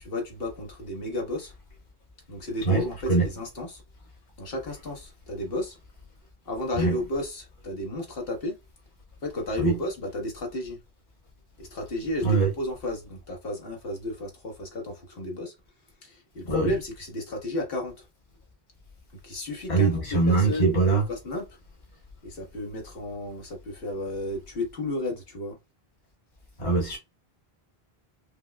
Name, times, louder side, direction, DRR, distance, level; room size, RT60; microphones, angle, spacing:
voice 1, 0.0-1.5 2.3-3.8 4.4-5.8 6.4-8.6 9.2-10.8 11.6-15.5 16.0-18.0 19.2-21.4 22.2-25.6, left 1 dB, 65° left, 1.4 m, -33 dB
voice 2, 2.6-3.3 6.8-6.9 9.6-9.8 12.2-12.5 16.5-16.7 19.7-21.0 26.6-27.0, right 4 dB, 45° left, 1.5 m, -22 dB
5.3 x 2.0 x 2.2 m
omnidirectional pair, 1.0 m